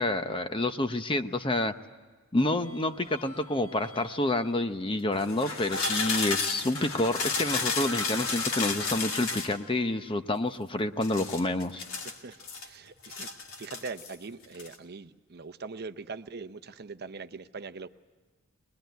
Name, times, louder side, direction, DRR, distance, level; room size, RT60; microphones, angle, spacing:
voice 1, 0.0-1.7 2.3-11.8, left 2 dB, 25° left, 9 dB, 0.8 m, -28 dB
sound 1, 2.4-4.3 5.1-9.6 11.0-12.7 13.0-14.1 14.4-14.7, left 4 dB, 60° left, 2.3 m, -33 dB
voice 2, 12.0-13.3 13.6-17.9, right 4 dB, 45° right, 10 dB, 0.7 m, -42 dB
23.5 x 21.0 x 9.3 m, 1.4 s
head